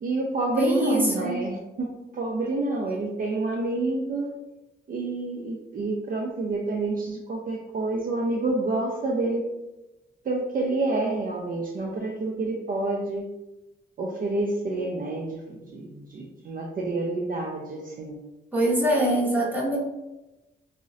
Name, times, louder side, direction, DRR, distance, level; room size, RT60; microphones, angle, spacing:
voice 1, 0.0-4.3 4.9-9.4 10.2-13.2 14.0-18.2, right 2 dB, 40° right, -1 dB, 0.4 m, -28 dB
voice 2, 0.6-1.4 18.5-19.8, right 1 dB, 10° right, -4 dB, 0.7 m, -23 dB
3.7 x 2.0 x 2.5 m, 1.0 s
cardioid pair, 100°, 21 cm